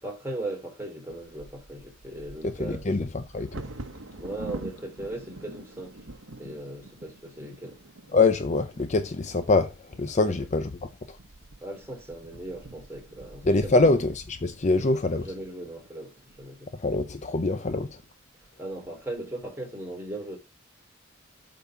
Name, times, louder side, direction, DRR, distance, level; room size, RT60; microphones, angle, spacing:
voice 1, 0.0-2.8 4.1-6.0 6.4-7.8 10.2-10.4 11.6-14.0 15.2-16.7 18.6-20.4, right 1 dB, 10° right, 3.0 m, -38 dB
Bird vocalization bird call bird song / Wind / Thunder, 1.1-17.0 17.6-17.7 18.1-18.5 18.9-19.4, right 2 dB, 65° right, 1.1 m, -46 dB
voice 2, 2.4-3.6 8.1-11.2 13.4-15.3 16.7-18.0, left 3 dB, 35° left, 0.5 m, -25 dB
8.2 x 3.9 x 5.6 m
head